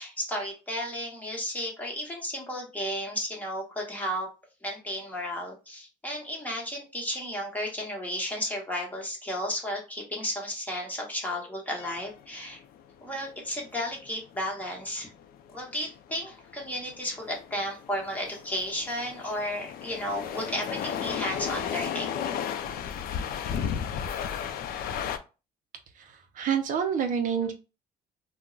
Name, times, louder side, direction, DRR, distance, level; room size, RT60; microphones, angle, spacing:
voice 1, 0.0-4.3 4.6-12.6 13.0-15.1 15.5-22.1, equal, 10° left, -1 dB, 1.0 m, -33 dB
sound 1, 11.8-25.2, left 8 dB, 60° left, 0.4 m, -34 dB
voice 2, 26.0-27.5, right 7 dB, 50° right, 6 dB, 0.4 m, -28 dB
2.2 x 2.0 x 3.7 m, 0.31 s
cardioid pair, 110°, 17 cm